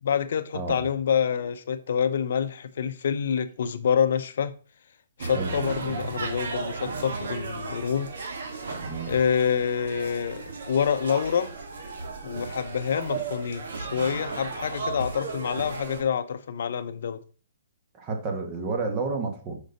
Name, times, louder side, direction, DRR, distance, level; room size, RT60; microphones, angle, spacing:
voice 1, 0.0-4.5 5.2-8.1 9.1-11.5 12.2-17.2, left 7 dB, 65° left, 0.6 m, -27 dB
sound 1, 5.2-16.0, right 4 dB, 65° right, 1.9 m, -35 dB
voice 2, 8.8-9.1 17.9-19.6, right 4 dB, 25° right, 1.5 m, -30 dB
6.4 x 5.2 x 4.0 m
hypercardioid pair, 155°, 0 cm